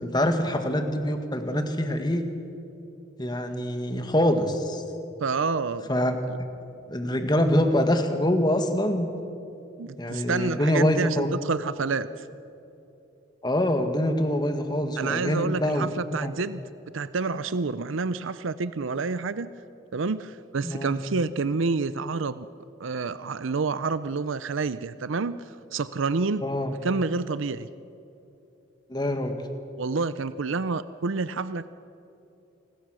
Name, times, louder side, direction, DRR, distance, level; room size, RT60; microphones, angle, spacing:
voice 1, 0.0-2.3 3.2-4.8 5.9-6.2 6.9-9.1 10.0-11.3 13.4-16.3 20.6-20.9 26.4-26.7 28.9-29.3, left 1 dB, 20° left, 6 dB, 1.7 m, -25 dB
voice 2, 5.2-5.9 6.3-6.4 9.8-12.1 15.0-16.6 16.9-19.5 19.9-22.5 22.8-25.4 25.7-27.7 29.8-31.7, right 4 dB, 75° right, 14 dB, 0.6 m, -28 dB
28.5 x 20.5 x 6.3 m, 2.8 s
head